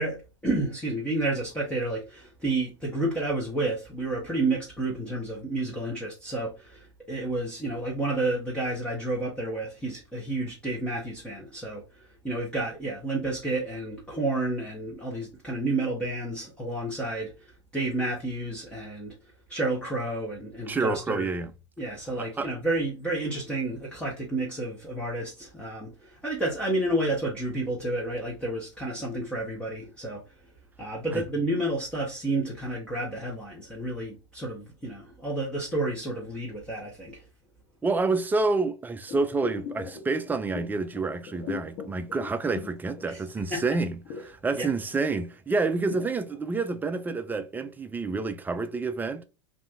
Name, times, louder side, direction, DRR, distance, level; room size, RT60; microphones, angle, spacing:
voice 1, 0.0-19.2 19.5-21.3 21.8-30.2 30.8-37.2 43.1-43.2 43.5-43.6 44.5-44.7, right 2 dB, 5° left, 0.9 m, -30 dB
voice 2, 20.7-21.5 22.2-22.5 31.1-31.2 37.8-44.0 44.2-49.2, right 3 dB, 10° right, 0.3 m, -28 dB
sound 1, 39.1-43.5 43.8-47.3 47.7-47.8, left 7 dB, 45° left, 0.8 m, -41 dB
2.6 x 2.4 x 3.5 m
hypercardioid pair, 100°, 16 cm